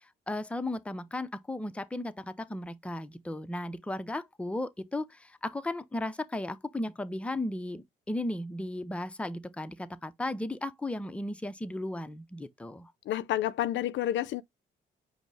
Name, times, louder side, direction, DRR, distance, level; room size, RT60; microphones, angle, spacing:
voice 1, 0.3-12.9, left 1 dB, 5° left, 0.5 m, -35 dB
voice 2, 13.1-14.4, left 12 dB, 70° left, 0.4 m, -29 dB
5.1 x 2.0 x 4.6 m
cardioid pair, 90°, 20 cm